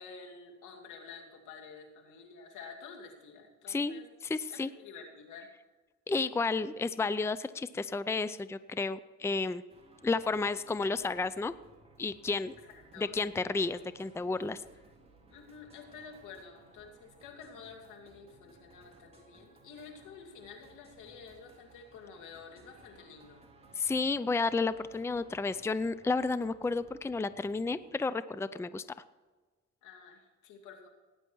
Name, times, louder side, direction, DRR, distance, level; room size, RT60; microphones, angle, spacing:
voice 1, 0.0-4.1 4.5-5.5 12.6-13.2 15.3-23.4 29.8-30.9, left 5 dB, 90° left, 3 dB, 2.6 m, -50 dB
voice 2, 3.7-4.0 4.3-4.7 6.1-9.6 10.0-11.5 12.0-12.5 13.0-14.6 23.8-28.8, left 3 dB, 10° left, 15 dB, 0.5 m, -32 dB
sound 1, 9.7-27.9, right 3 dB, 20° right, 3.4 m, -60 dB
18.0 x 9.8 x 4.6 m, 1.3 s
cardioid pair, 90°, 30 cm